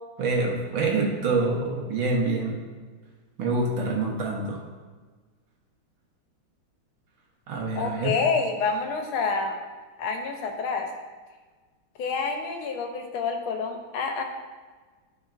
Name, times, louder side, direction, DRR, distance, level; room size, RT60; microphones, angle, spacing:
voice 1, 0.2-2.6 3.4-4.6 7.5-8.2, right 3 dB, 75° right, -1 dB, 1.8 m, -26 dB
voice 2, 7.7-9.6 10.0-10.9 12.0-14.2, left 4 dB, 85° left, 4 dB, 1.6 m, -28 dB
11.5 x 4.3 x 2.5 m, 1.4 s
omnidirectional pair, 2.2 m